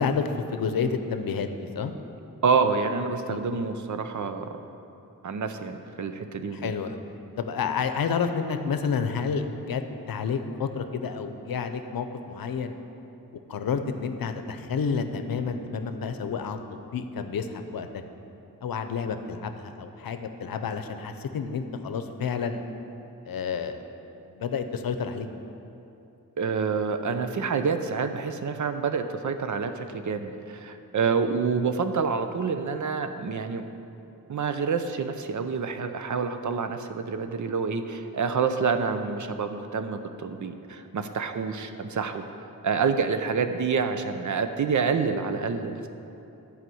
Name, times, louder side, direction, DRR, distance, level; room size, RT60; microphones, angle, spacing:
voice 1, 0.0-1.9 3.3-3.4 6.5-7.0 7.4-9.8 10.1-12.8 13.5-16.6 16.9-17.9 18.6-22.6 23.3-23.8 24.3-25.3, left 6 dB, 75° left, 8 dB, 0.7 m, -30 dB
voice 2, 2.4-4.6 5.2-6.7 26.4-33.7 34.3-42.3 42.6-45.9, right 5 dB, 55° right, 8 dB, 0.6 m, -27 dB
11.5 x 5.0 x 7.7 m, 2.9 s
wide cardioid pair, 125°, 35 cm